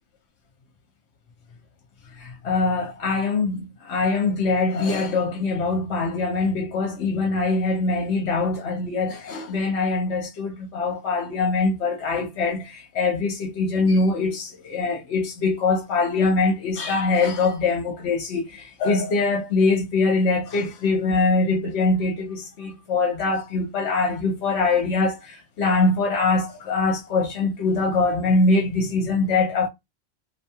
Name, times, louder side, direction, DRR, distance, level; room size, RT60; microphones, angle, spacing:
voice 1, 2.2-29.7, left 3 dB, 65° left, 0.9 m, -23 dB
2.5 x 2.2 x 2.7 m
omnidirectional pair, 1.3 m